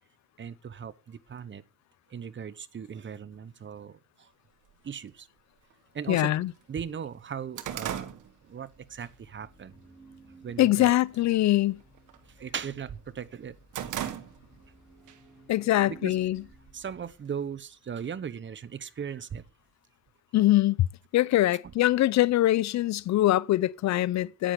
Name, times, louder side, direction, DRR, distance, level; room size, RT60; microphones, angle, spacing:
voice 1, 0.4-1.6 2.1-4.3 4.8-5.3 5.9-6.3 6.7-8.1 8.5-9.7 10.4-10.9 12.2-13.6 15.9-16.2 16.7-19.4 21.6-21.7, right 7 dB, 40° right, 0.9 m, -38 dB
sound 1, 4.7-4.8 5.7-5.8 6.3-6.4 6.7-9.1 9.5-9.8 10.2-10.7 11.0-11.3 11.6-12.9 13.2-14.7 15.1-15.2 16.1-17.0, right 10 dB, 80° right, 1.5 m, -38 dB
voice 2, 6.1-6.5 10.6-11.8 15.5-16.4 20.3-20.9 21.1-24.5, left 15 dB, 65° left, 0.5 m, -23 dB
sound 2, 8.6-17.6, right 3 dB, ahead, 5.9 m, -56 dB
10.0 x 9.5 x 6.8 m
cardioid pair, 90°, 30 cm